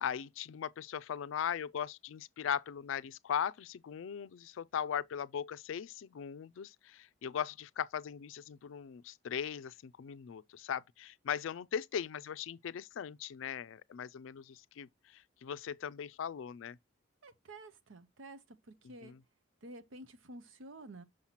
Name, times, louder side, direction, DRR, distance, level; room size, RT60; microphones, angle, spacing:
voice 1, 0.0-16.8 19.0-19.2, left 8 dB, 85° left, 0.4 m, -39 dB
voice 2, 17.2-19.2 19.6-21.0, right 2 dB, 90° right, 0.8 m, -51 dB
6.5 x 2.9 x 5.7 m
head